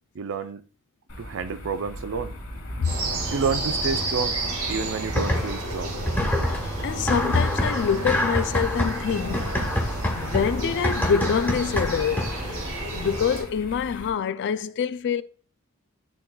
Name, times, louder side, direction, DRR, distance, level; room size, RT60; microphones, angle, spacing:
voice 1, 0.1-0.6 1.2-2.4 3.3-4.4 4.7-6.0, right 5 dB, 60° right, 0.5 m, -29 dB
sound 1, 1.1-14.1, left 1 dB, 75° left, 1.8 m, -39 dB
sound 2, 2.8-13.4, right 2 dB, 85° right, 2.5 m, -31 dB
sound 3, 5.1-5.7 6.1-12.5, left 1 dB, 10° left, 1.3 m, -27 dB
voice 2, 6.5-9.5 10.1-12.6 12.9-15.2, left 7 dB, 50° left, 0.3 m, -25 dB
11.0 x 3.8 x 2.3 m
head